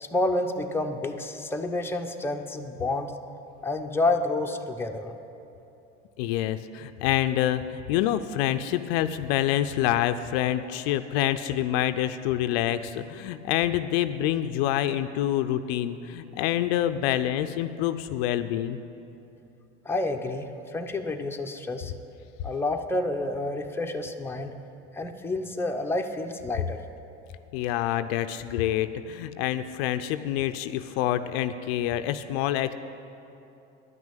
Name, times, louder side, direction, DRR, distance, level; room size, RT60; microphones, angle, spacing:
voice 1, 0.0-3.1 3.6-5.1 19.8-21.9 22.4-24.5 24.9-26.8, left 2 dB, 5° left, 3 dB, 0.8 m, -29 dB
voice 2, 6.2-18.8 27.5-32.7, left 12 dB, 70° left, 11 dB, 0.5 m, -27 dB
10.5 x 6.1 x 8.9 m, 2.9 s
hypercardioid pair, 85°, 32 cm